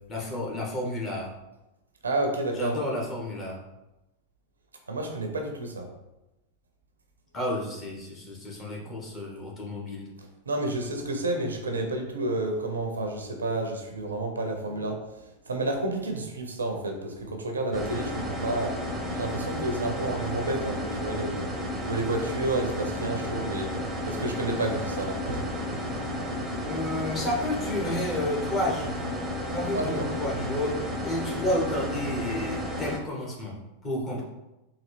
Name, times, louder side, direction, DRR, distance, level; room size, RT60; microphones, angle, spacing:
voice 1, 0.1-1.3 2.6-3.6 7.3-10.1 14.7-14.8 26.7-29.2 29.5-33.6 33.8-34.2, left 1 dB, 25° left, -3 dB, 1.2 m, -31 dB
voice 2, 2.0-2.8 4.9-5.9 10.5-18.8 19.1-21.4 21.8-25.5 29.7-30.1, right 2 dB, 75° right, 3 dB, 0.6 m, -30 dB
sound 1, 17.7-33.0, left 1 dB, 10° right, 0.7 m, -32 dB
4.0 x 2.4 x 3.3 m, 0.97 s
figure-of-eight pair, 90°, 0 cm